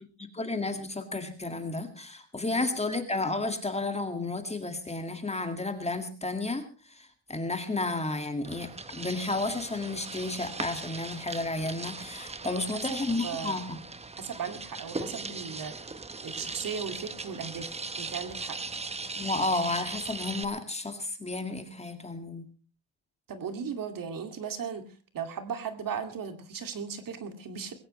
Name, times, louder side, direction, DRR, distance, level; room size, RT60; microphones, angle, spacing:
voice 1, 0.3-6.7 6.9-13.8 19.2-22.5, left 2 dB, 15° left, 6 dB, 2.1 m, -32 dB
sound 1, 8.4-20.4, right 3 dB, 15° right, 1.0 m, -39 dB
voice 2, 12.4-13.6 14.2-15.9 16.2-18.6 23.3-24.9 25.1-27.7, right 6 dB, 45° right, 7 dB, 2.5 m, -37 dB
21.0 x 17.5 x 3.2 m, 0.36 s
cardioid pair, 145°, 47 cm